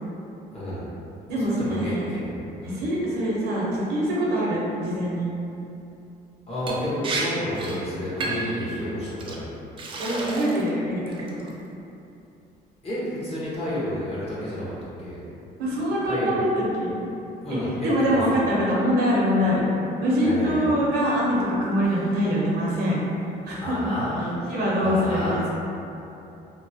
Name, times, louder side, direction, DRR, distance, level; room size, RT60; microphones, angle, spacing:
voice 1, 0.5-0.9 1.3-2.8 6.5-9.5 12.8-14.7 15.0-15.2 16.1-16.4 17.4-18.4 20.2-20.7 23.5-24.3 24.8-25.5, equal, 35° left, -9 dB, 1.1 m, -30 dB
voice 2, 1.3-2.0 2.6-5.3 10.0-11.2 15.6-16.9 17.5-19.6 20.0-23.0 23.4-23.9 24.5-25.5, equal, 70° right, -5 dB, 0.7 m, -24 dB
Liquid, 6.7-6.8 7.0-7.3 7.5-7.8 8.2-8.5 9.2-9.4 9.8-10.7 11.1-11.5, right 3 dB, 30° right, 0.4 m, -30 dB
2.8 x 2.1 x 2.7 m, 2.8 s
cardioid pair, 110°, 17 cm